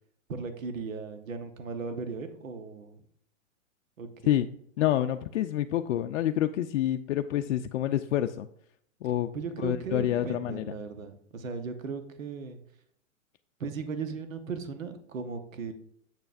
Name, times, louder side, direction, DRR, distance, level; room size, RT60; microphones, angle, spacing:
voice 1, 0.3-3.0 4.0-4.3 9.3-12.6 13.6-15.7, right 5 dB, 80° right, 8 dB, 1.1 m, -37 dB
voice 2, 4.8-8.5 9.0-9.3 9.6-10.7, left 12 dB, 65° left, 7 dB, 0.5 m, -27 dB
7.9 x 6.8 x 2.5 m, 0.67 s
hypercardioid pair, 115°, 39 cm